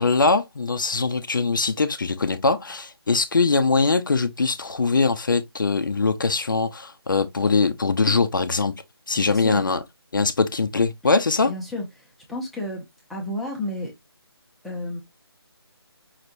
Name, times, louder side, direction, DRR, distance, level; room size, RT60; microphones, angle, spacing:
voice 1, 0.0-8.7 9.1-9.8 10.1-11.5, left 4 dB, 50° left, 0.8 m, -22 dB
voice 2, 9.2-9.6 11.4-12.8 13.1-13.9 14.6-15.0, left 1 dB, ahead, 0.9 m, -31 dB
5.7 x 3.4 x 2.6 m
figure-of-eight pair, 155°, 14 cm